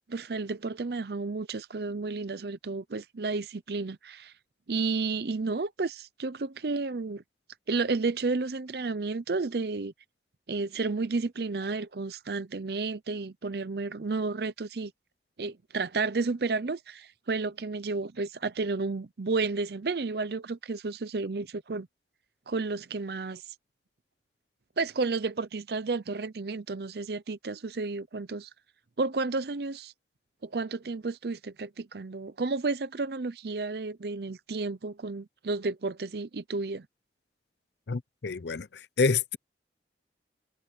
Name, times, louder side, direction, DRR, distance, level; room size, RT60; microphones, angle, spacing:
voice 1, 0.1-4.3 4.7-7.2 7.7-9.9 10.5-14.9 15.4-21.9 22.5-23.4 24.8-28.5 29.0-29.9 30.4-36.9, right 3 dB, 60° right, 0.6 m, -32 dB
voice 2, 37.9-39.4, left 4 dB, 75° left, 0.6 m, -28 dB
head